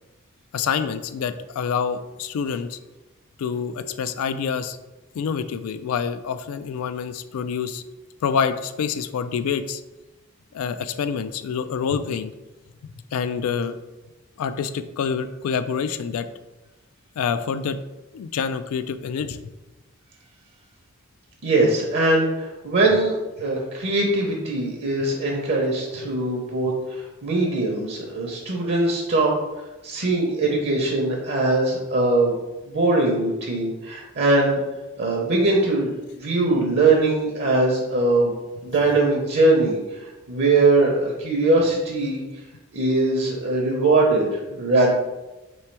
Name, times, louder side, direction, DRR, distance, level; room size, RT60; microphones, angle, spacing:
voice 1, 0.5-2.8 3.4-4.8 5.1-7.8 8.2-9.8 10.5-12.3 13.1-13.8 14.4-16.3 17.2-17.8 18.1-19.4, left 6 dB, 80° left, 11 dB, 0.3 m, -27 dB
voice 2, 21.4-29.4 29.8-32.3 32.7-34.6 35.0-38.3 38.6-42.2 42.7-44.9, right 2 dB, 50° right, -1 dB, 0.7 m, -21 dB
3.3 x 3.1 x 4.5 m, 1.1 s
head